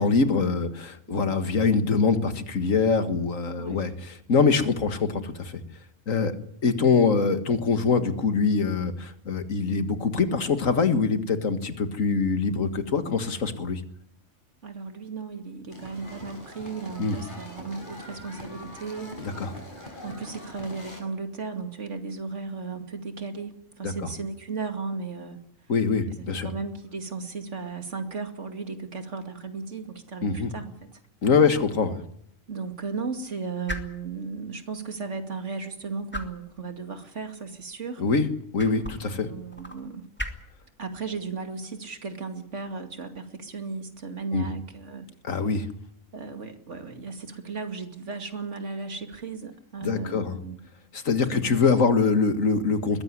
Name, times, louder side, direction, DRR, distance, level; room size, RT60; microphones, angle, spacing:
voice 1, 0.0-5.6 6.1-6.3 6.6-13.8 17.0-17.2 19.2-19.5 23.8-23.9 25.7-26.5 30.2-30.5 31.2-32.0 38.0-38.3 38.5-39.3 44.3-44.5 45.2-45.7 49.8-50.3 50.9-53.0, left 4 dB, 85° left, 9 dB, 2.1 m, -24 dB
voice 2, 14.6-19.1 20.0-25.4 26.1-31.0 32.5-38.0 39.0-40.1 40.8-45.1 46.1-50.6 51.3-51.6 51.9-52.1, right 4 dB, 65° right, 7 dB, 2.7 m, -35 dB
sound 1, 15.7-21.0, left 1 dB, 40° left, 6.1 m, -42 dB
sound 2, 30.6-44.2, left 1 dB, 10° left, 2.5 m, -44 dB
21.5 x 15.5 x 9.9 m, 0.70 s
omnidirectional pair, 1.3 m